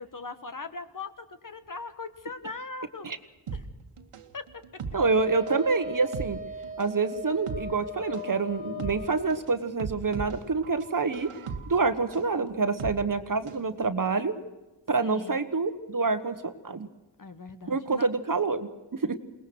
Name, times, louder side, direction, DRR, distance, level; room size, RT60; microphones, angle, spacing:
voice 1, 0.0-3.1 3.5-3.6 4.3-4.4 15.0-15.4 17.2-18.1, left 3 dB, 40° left, 10 dB, 1.6 m, -40 dB
sound 1, 3.5-13.7 14.0-14.1, right 5 dB, 90° right, 1.7 m, -39 dB
voice 2, 4.9-6.4 6.8-11.3 11.7-14.3 14.9-16.9 17.7-19.1, right 4 dB, 40° right, 10 dB, 1.4 m, -27 dB
Wind instrument woodwind instrument, 5.0-9.4, equal, 75° left, 3.6 m, -39 dB
21.5 x 19.5 x 6.3 m, 1.1 s
cardioid pair, 65°, 50 cm